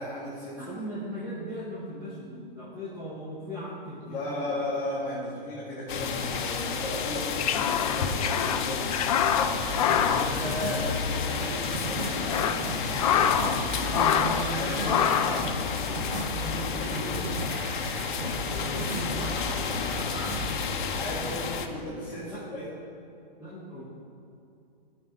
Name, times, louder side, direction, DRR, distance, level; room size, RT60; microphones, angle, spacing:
voice 1, 0.0-0.8 4.0-12.4 14.5-15.3 20.9-22.7, left 1 dB, 15° left, -10 dB, 1.7 m, -36 dB
voice 2, 0.6-4.6 13.4-15.0 15.3-15.6 16.0-17.4 18.5-19.9 21.3-21.6 22.3-22.4 23.4-23.8, equal, 10° right, -13 dB, 2.1 m, -38 dB
sound 1, 5.9-21.7, left 6 dB, 55° left, 0.8 m, -31 dB
sound 2, 7.1-11.2 11.4-11.5 12.0-13.6 13.9-14.5 14.8-15.5, left 8 dB, 40° left, 0.4 m, -26 dB
sound 3, 9.7-20.8, right 1 dB, 50° right, 1.5 m, -35 dB
13.0 x 4.6 x 4.2 m, 2.7 s
hypercardioid pair, 160°, 29 cm